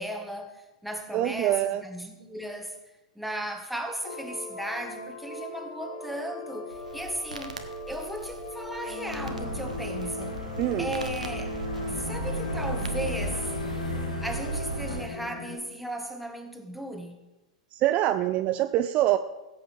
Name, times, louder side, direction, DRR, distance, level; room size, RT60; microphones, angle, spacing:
voice 1, 0.0-2.8 3.1-7.6 7.8-10.4 10.8-11.5 11.9-13.5 14.2-17.2, right 1 dB, ahead, 1.4 m, -36 dB
voice 2, 1.1-1.8 10.6-10.9 17.7-19.2, right 13 dB, 35° right, 0.4 m, -24 dB
sound 1, 4.0-15.6, left 1 dB, 50° left, 1.8 m, -38 dB
Crackle, 6.7-13.6, right 1 dB, 90° right, 1.0 m, -45 dB
sound 2, 9.2-15.0, equal, 85° left, 1.9 m, -34 dB
16.5 x 7.9 x 3.4 m
figure-of-eight pair, 100°, 4 cm